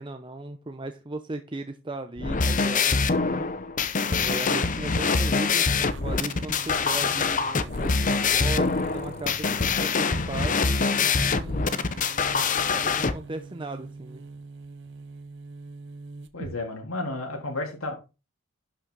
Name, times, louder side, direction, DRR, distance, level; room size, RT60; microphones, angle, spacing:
voice 1, 0.0-3.4 4.1-11.7 12.3-12.4 12.7-14.2, right 2 dB, 25° right, 7 dB, 0.7 m, -37 dB
sound 1, 2.2-13.1, left 4 dB, 40° left, 0.7 m, -24 dB
sound 2, 5.7-16.6, right 3 dB, 60° right, 0.9 m, -43 dB
voice 2, 16.3-17.9, left 2 dB, 90° left, 1 dB, 3.5 m, -32 dB
11.5 x 5.9 x 4.0 m, 0.30 s
head